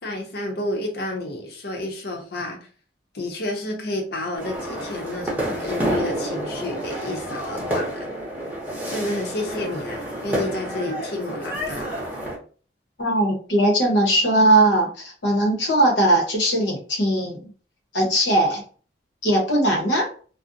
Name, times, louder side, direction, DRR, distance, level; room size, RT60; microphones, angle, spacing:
voice 1, 0.0-2.7 3.1-8.1 8.8-12.0, left 1 dB, 60° left, 2 dB, 0.6 m, -30 dB
sound 1, 4.4-12.4, right 1 dB, 10° right, 0.6 m, -29 dB
voice 2, 13.0-17.4 17.9-18.6 19.2-20.1, right 1 dB, 85° left, 0 dB, 0.9 m, -19 dB
2.5 x 2.0 x 2.5 m, 0.41 s
head